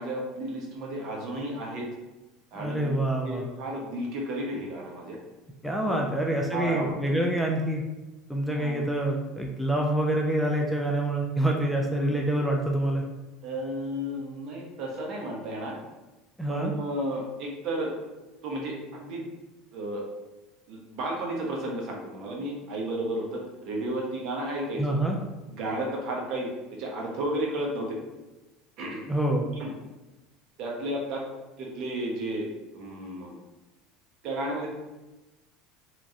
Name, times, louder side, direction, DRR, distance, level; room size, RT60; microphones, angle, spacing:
voice 1, 0.0-1.9 2.5-2.9 3.2-5.2 5.8-6.0 6.5-6.9 8.5-8.8 11.7-12.2 13.4-15.7 16.5-18.1 18.4-19.2 19.7-20.0 20.7-25.0 25.5-28.0 28.8-29.1 29.6-29.7 30.6-31.3 31.6-33.4 34.2-34.7, right 1 dB, 55° right, -1 dB, 0.8 m, -33 dB
voice 2, 2.5-3.4 5.6-7.8 8.3-13.0 16.4-16.7 24.8-25.2 29.1-29.4, right 1 dB, ahead, -1 dB, 0.3 m, -26 dB
3.0 x 2.4 x 2.7 m, 1.1 s
supercardioid pair, 125°, 0 cm